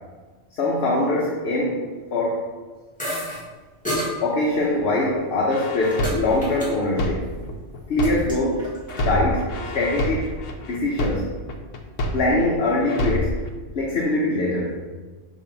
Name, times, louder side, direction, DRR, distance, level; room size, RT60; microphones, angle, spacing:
voice 1, 0.5-1.8 2.1-2.4 4.2-7.3 7.9-8.7 8.9-9.5 9.7-10.3 10.7-11.3 12.1-13.4 13.7-14.8, left 2 dB, 55° left, -3 dB, 1.0 m, -22 dB
sound 1, 3.0-3.4 3.8-4.1 5.1-6.2 6.4-6.7 7.0-7.4 7.7-9.0, equal, 5° left, 1.7 m, -30 dB
sound 2, 5.5-8.5 8.9-12.5 12.9-13.5, left 1 dB, 80° left, 1.1 m, -27 dB
5.8 x 3.2 x 5.2 m, 1.3 s
omnidirectional pair, 1.3 m